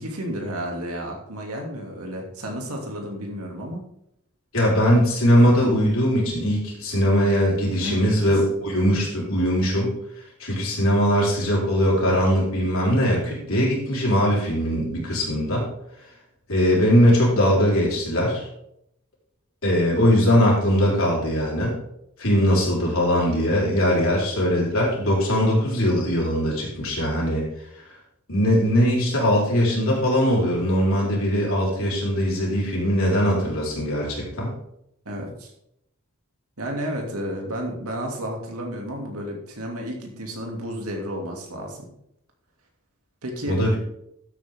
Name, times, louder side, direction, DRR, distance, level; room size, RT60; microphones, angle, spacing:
voice 1, 0.0-3.8 7.8-8.3 23.9-24.1 35.1-35.5 36.6-41.8 43.2-43.6, equal, 85° right, 1 dB, 2.6 m, -32 dB
voice 2, 4.5-15.7 16.5-18.5 19.6-21.8 22.2-27.4 28.3-34.5 43.5-43.8, equal, 70° left, -4 dB, 4.3 m, -21 dB
12.5 x 8.2 x 3.7 m, 0.76 s
head